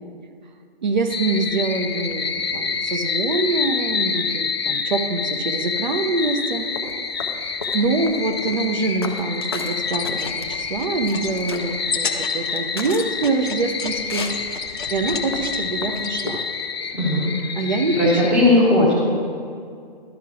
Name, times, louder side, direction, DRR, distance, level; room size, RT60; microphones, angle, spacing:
voice 1, 0.8-6.7 7.5-14.3 14.9-16.4 17.6-18.0, right 3 dB, 50° right, 6 dB, 0.7 m, -24 dB
sound 1, 1.1-18.3, left 5 dB, 90° left, 1.1 m, -28 dB
sound 2, 6.6-16.4, left 4 dB, 25° left, 0.4 m, -36 dB
sound 3, 9.8-16.3, left 5 dB, 55° left, 0.8 m, -34 dB
voice 2, 16.9-17.4 17.9-18.9, left 2 dB, 5° right, -6 dB, 0.8 m, -17 dB
11.5 x 4.6 x 6.0 m, 2.3 s
hypercardioid pair, 160°, 30 cm